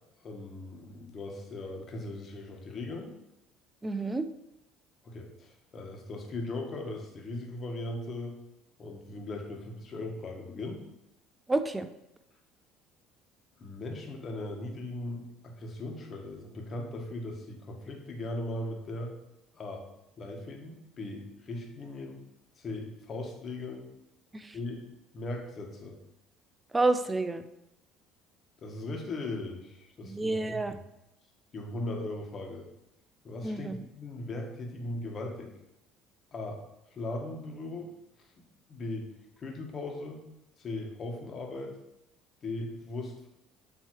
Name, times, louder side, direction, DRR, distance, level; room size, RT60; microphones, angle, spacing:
voice 1, 0.2-3.1 5.0-8.3 8.8-10.8 13.6-19.2 19.5-19.8 20.2-22.2 22.6-23.9 24.5-24.8 25.1-26.0 28.6-30.8 31.5-32.7 33.2-35.5 36.3-36.6 36.9-37.9 38.4-39.1 39.4-40.3 40.6-41.7 42.4-43.3, left 2 dB, 40° left, 1 dB, 1.4 m, -38 dB
voice 2, 3.8-4.2 11.5-11.9 24.3-24.5 26.7-27.4 30.0-30.7 33.4-33.8, right 2 dB, 15° right, 10 dB, 0.5 m, -29 dB
7.5 x 3.1 x 4.7 m, 0.86 s
supercardioid pair, 100°, 0 cm